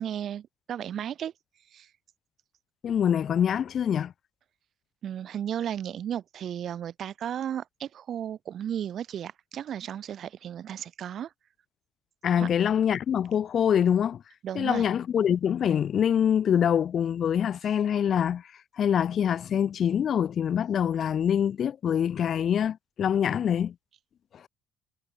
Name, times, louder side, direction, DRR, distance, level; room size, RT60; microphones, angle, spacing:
voice 1, 0.0-1.3 1.7-1.9 5.0-11.3 12.4-12.5 14.4-14.8, right 9 dB, 50° right, 1.5 m, -34 dB
voice 2, 2.8-4.1 12.2-14.2 14.5-18.5 18.8-23.7 24.3-24.4, left 8 dB, 45° left, 1.2 m, -25 dB
cardioid pair, 120°, 0 cm